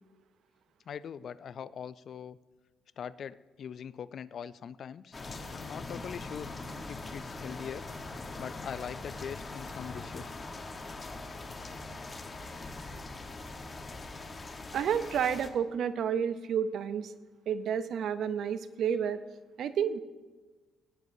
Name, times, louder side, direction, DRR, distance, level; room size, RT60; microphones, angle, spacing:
voice 1, 0.9-2.4 3.0-5.2 5.5-6.5 6.9-7.8 8.4-10.4, left 8 dB, 60° left, 17 dB, 0.3 m, -42 dB
sound 1, 5.1-15.5, left 3 dB, 30° left, 1.1 m, -42 dB
voice 2, 14.7-17.1 17.5-19.2 19.6-20.0, right 8 dB, 70° right, 12 dB, 0.6 m, -30 dB
17.0 x 9.4 x 2.7 m, 1.3 s
cardioid pair, 90°, 0 cm